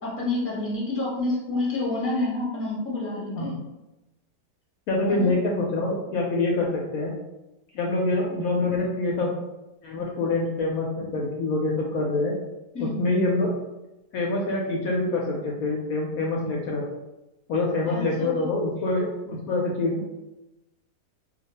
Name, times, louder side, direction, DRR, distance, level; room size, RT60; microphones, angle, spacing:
voice 1, 0.0-3.6 5.1-5.3 12.7-13.1 17.8-18.5, left 2 dB, 10° left, -5 dB, 0.7 m, -28 dB
voice 2, 4.9-7.1 7.7-9.3 9.8-12.3 12.8-13.5 14.1-16.8 17.5-20.1, left 2 dB, 70° left, -2 dB, 0.9 m, -25 dB
2.7 x 2.5 x 4.0 m, 0.98 s
omnidirectional pair, 1.8 m